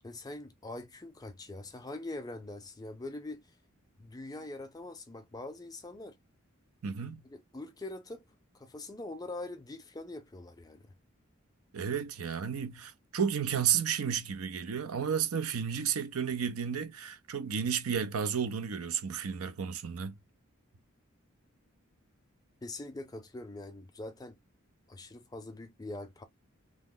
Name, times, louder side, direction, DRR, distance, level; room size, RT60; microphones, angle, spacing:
voice 1, 0.0-3.4 4.0-6.2 7.2-8.2 8.5-10.9 22.6-24.4 24.9-26.2, left 2 dB, 20° left, 0.5 m, -43 dB
voice 2, 6.8-7.3 11.7-20.1, right 7 dB, 85° right, 0.5 m, -32 dB
3.0 x 2.0 x 3.6 m
head